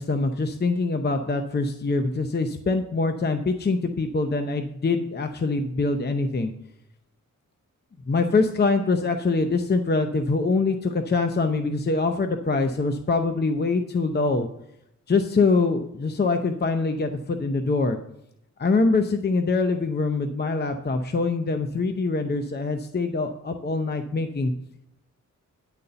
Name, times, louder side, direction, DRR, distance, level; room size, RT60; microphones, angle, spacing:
voice 1, 0.0-6.5 8.1-14.5 15.1-18.0 18.6-24.5, left 3 dB, 30° left, 7 dB, 0.6 m, -24 dB
9.8 x 4.1 x 6.7 m, 0.81 s
wide cardioid pair, 85°, 32 cm